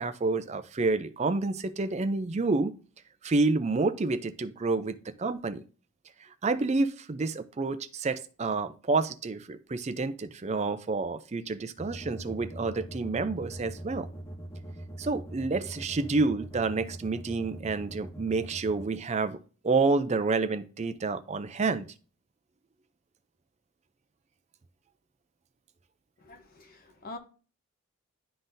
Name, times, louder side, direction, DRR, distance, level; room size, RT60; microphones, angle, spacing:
voice 1, 0.0-2.7 3.2-5.6 6.4-14.1 15.0-19.4 19.6-21.9, right 3 dB, 30° right, 12 dB, 0.4 m, -29 dB
sound 1, 11.8-18.8, right 1 dB, 10° left, 0.9 m, -42 dB
voice 2, 26.2-27.2, left 2 dB, 40° left, 6 dB, 0.9 m, -45 dB
11.0 x 3.9 x 2.6 m, 0.38 s
head